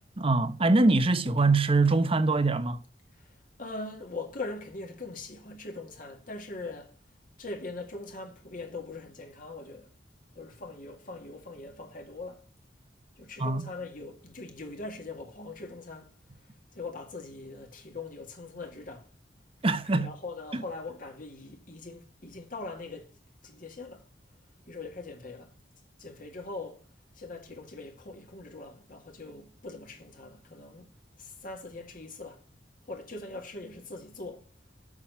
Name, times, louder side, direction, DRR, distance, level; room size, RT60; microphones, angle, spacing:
voice 1, 0.2-2.8 13.4-13.6 19.6-20.1 20.5-20.6, right 3 dB, 30° right, 0.8 m, -23 dB
voice 2, 3.2-7.0 7.4-9.9 10.4-12.5 13.2-16.1 16.4-19.1 19.9-24.1 24.7-25.5 26.0-26.9 27.1-30.9 31.2-32.5 32.9-34.5, left 3 dB, 50° left, 1.9 m, -41 dB
7.3 x 6.4 x 5.5 m
head